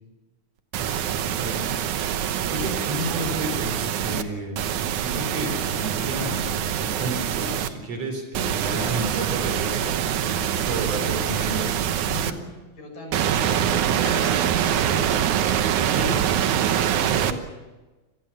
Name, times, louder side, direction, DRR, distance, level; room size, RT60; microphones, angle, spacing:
sound 1, 0.7-4.2 4.6-7.7 8.3-12.3 13.1-17.3, right 9 dB, 70° right, 2.3 m, -24 dB
voice 1, 0.8-1.1 1.4-1.7 2.5-4.6 5.0-9.9 10.2-12.4 13.3-13.6 14.9-15.1 15.9-16.2 17.0-17.4, right 1 dB, 50° right, 5 dB, 4.9 m, -32 dB
voice 2, 10.6-11.1 12.8-15.2 16.0-16.2, left 2 dB, 80° left, 2 dB, 7.9 m, -38 dB
27.0 x 19.0 x 7.2 m, 1.2 s
omnidirectional pair, 3.9 m